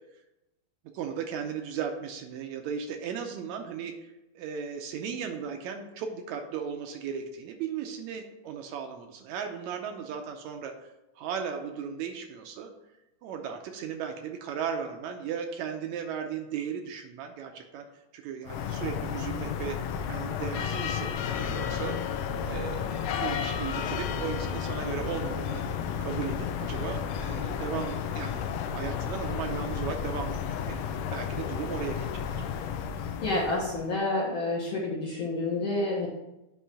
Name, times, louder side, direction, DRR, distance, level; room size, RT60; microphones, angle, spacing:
voice 1, 0.9-10.9 11.2-12.7 13.2-17.9 18.1-19.8 20.1-22.0 22.4-25.6 26.0-28.4 28.7-30.8 31.1-32.5, right 7 dB, 75° right, 5 dB, 1.8 m, -36 dB
sound 1, 18.5-33.9, left 7 dB, 80° left, 1.5 m, -32 dB
voice 2, 33.2-36.1, left 2 dB, 60° left, -4 dB, 1.4 m, -29 dB
8.4 x 3.1 x 5.7 m, 0.95 s
omnidirectional pair, 3.5 m